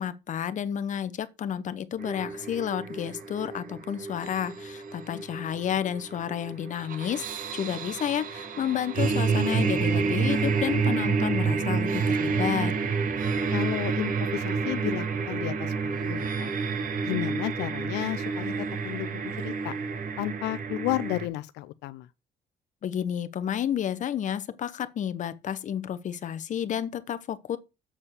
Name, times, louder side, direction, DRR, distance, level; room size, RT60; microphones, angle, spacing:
voice 1, 0.0-12.7 22.8-27.6, left 9 dB, 45° left, 0.8 m, -31 dB
sound 1, 2.0-21.3, right 5 dB, 55° right, 1.5 m, -29 dB
voice 2, 13.5-16.5 17.0-19.7 20.2-22.1, left 17 dB, 85° left, 0.5 m, -33 dB
7.3 x 4.4 x 6.8 m
cardioid pair, 110°, 17 cm